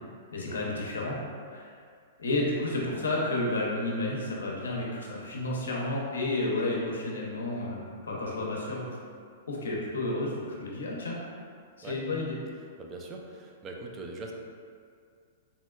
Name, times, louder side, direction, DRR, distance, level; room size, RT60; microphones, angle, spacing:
voice 1, 0.3-1.2 1.4-1.7 2.2-8.9 9.5-11.2 11.8-12.4, left 2 dB, 80° left, -3 dB, 0.6 m, -31 dB
voice 2, 12.8-14.3, right 3 dB, 30° right, 0 dB, 0.4 m, -42 dB
3.7 x 2.1 x 2.2 m, 2.2 s
hypercardioid pair, 115°, 0 cm